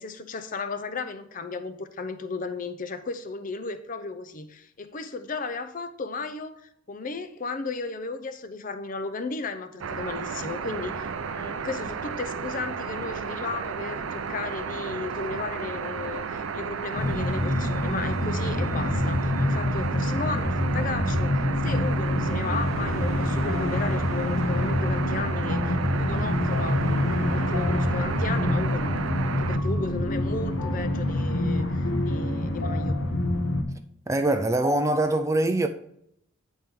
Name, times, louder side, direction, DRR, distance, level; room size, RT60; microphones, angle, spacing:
voice 1, 0.0-26.8 27.1-29.0 29.3-33.0, left 4 dB, 40° left, 0.5 m, -35 dB
sound 1, 9.8-29.6, right 6 dB, 90° right, 0.5 m, -33 dB
sound 2, 16.9-33.6, left 1 dB, 85° left, 1.1 m, -26 dB
voice 2, 34.1-35.7, right 2 dB, 15° right, 0.4 m, -23 dB
9.3 x 4.4 x 3.5 m
head